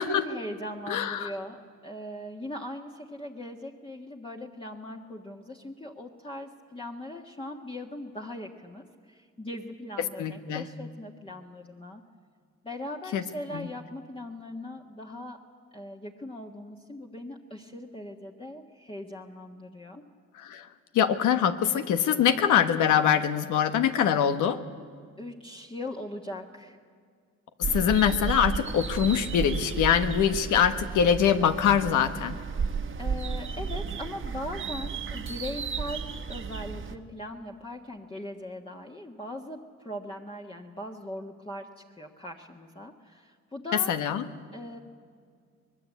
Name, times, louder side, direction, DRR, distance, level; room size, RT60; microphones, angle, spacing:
voice 1, 0.2-12.0 12.6-15.4 15.7-20.0 25.2-26.8 33.0-43.9 44.5-44.8, left 1 dB, 15° left, 0 dB, 1.5 m, -40 dB
voice 2, 0.9-1.3 10.0-10.6 13.1-13.2 13.5-13.7 20.3-20.7 20.9-24.6 27.6-32.4 43.9-44.2, left 8 dB, 85° left, 9 dB, 1.4 m, -24 dB
sound 1, 27.6-37.0, right 5 dB, 40° right, 1.4 m, -33 dB
24.5 x 20.0 x 8.3 m, 2.1 s
cardioid pair, 90°, 30 cm